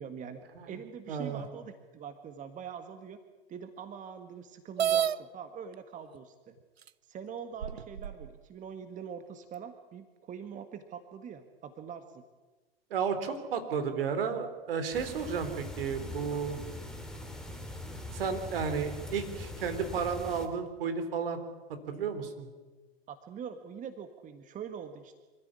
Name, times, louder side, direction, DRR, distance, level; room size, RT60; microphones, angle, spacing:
voice 1, 0.0-0.4 0.7-3.2 3.5-6.6 7.1-12.2 16.3-16.4 23.1-25.2, right 7 dB, 25° right, 8 dB, 1.7 m, -43 dB
voice 2, 1.1-1.4 12.9-16.6 18.1-21.4 21.9-22.5, right 6 dB, 65° right, 8 dB, 3.8 m, -33 dB
sound 1, 4.8-5.2 6.2-6.3 6.9-7.0 7.6-8.3, right 9 dB, 85° right, 0.7 m, -29 dB
sound 2, 14.9-20.5, left 1 dB, ahead, 3.2 m, -42 dB
25.5 x 14.5 x 9.9 m, 1.3 s
figure-of-eight pair, 100°, 31 cm